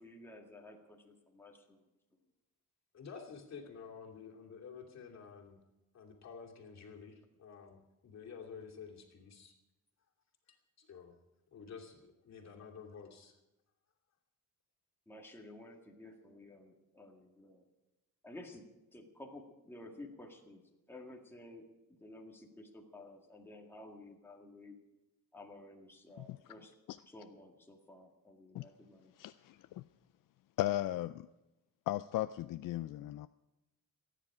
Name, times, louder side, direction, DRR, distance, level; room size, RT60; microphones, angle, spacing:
voice 1, 0.0-1.8 15.1-17.6 18.2-18.6 18.9-20.6 20.9-21.7 22.0-24.8 25.3-26.7 27.1-29.1, left 2 dB, 5° left, 0 dB, 2.0 m, -53 dB
voice 2, 2.9-5.6 5.9-9.5 10.5-11.1 11.5-13.3, left 6 dB, 50° left, 1 dB, 2.7 m, -51 dB
voice 3, 29.2-29.8 30.6-31.3 31.9-33.3, left 14 dB, 75° left, 12 dB, 0.5 m, -36 dB
28.5 x 10.0 x 5.0 m, 0.99 s
wide cardioid pair, 170°, 33 cm